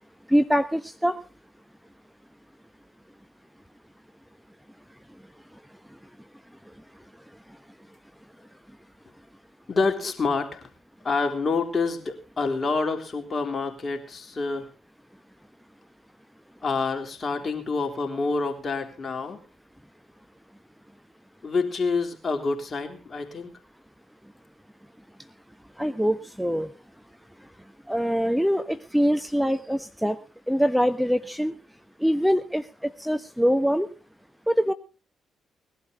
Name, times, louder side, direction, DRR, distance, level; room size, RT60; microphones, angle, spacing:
voice 1, 0.3-1.2 25.8-26.7 27.9-30.2 30.5-31.5 32.0-33.9 34.5-34.7, equal, ahead, 11 dB, 1.1 m, -23 dB
voice 2, 9.7-10.7 11.0-14.7 16.6-19.4 21.4-23.5, left 4 dB, 45° left, 4 dB, 3.7 m, -27 dB
20.0 x 12.0 x 3.9 m, 0.32 s
hypercardioid pair, 45°, 0 cm